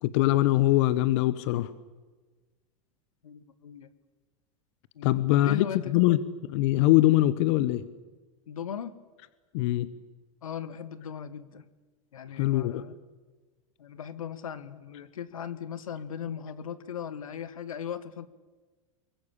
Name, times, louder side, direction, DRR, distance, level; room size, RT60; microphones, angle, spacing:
voice 1, 0.0-1.7 5.0-5.7 5.9-7.8 9.5-9.9 12.4-12.8, left 15 dB, 60° left, 15 dB, 1.2 m, -23 dB
voice 2, 3.2-3.9 4.9-5.9 8.5-9.0 10.4-11.7 12.1-12.9 13.8-18.3, left 8 dB, 80° left, 14 dB, 1.6 m, -38 dB
25.5 x 23.0 x 8.6 m, 1.3 s
hypercardioid pair, 90°, 17 cm